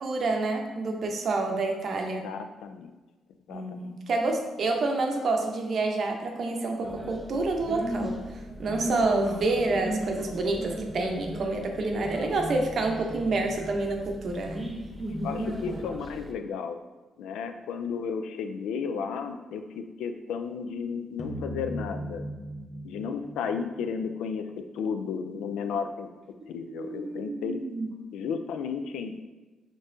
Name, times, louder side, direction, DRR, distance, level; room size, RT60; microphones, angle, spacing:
voice 1, 0.0-2.3 3.5-8.2 8.6-14.6 26.8-27.9, right 3 dB, 55° right, 3 dB, 0.6 m, -28 dB
voice 2, 2.2-2.9 3.5-3.9 15.2-16.8 17.2-22.2 22.8-24.5 24.7-26.1 26.5-27.6 28.1-29.2, left 6 dB, 85° left, 7 dB, 0.3 m, -33 dB
sound 1, 6.8-16.3, equal, 10° right, 0.5 m, -36 dB
sound 2, 21.2-24.4, equal, 25° left, 0.6 m, -38 dB
4.2 x 3.0 x 2.6 m, 1.2 s
cardioid pair, 90°, 0 cm